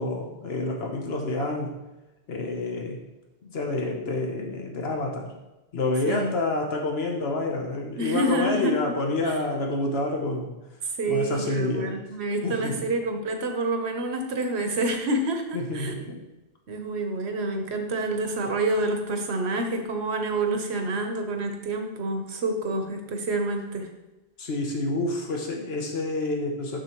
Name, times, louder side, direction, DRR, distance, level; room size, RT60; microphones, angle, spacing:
voice 1, 0.0-1.7 2.3-3.0 3.4-5.3 5.7-10.5 11.1-12.0 12.4-12.8 15.5-16.2 24.4-26.8, left 2 dB, 75° left, 1 dB, 1.1 m, -28 dB
voice 2, 6.1-6.4 8.0-9.0 9.2-9.4 11.0-16.1 16.7-23.9, right 2 dB, 85° right, 5 dB, 1.2 m, -28 dB
6.5 x 6.1 x 3.0 m, 1.0 s
omnidirectional pair, 1.1 m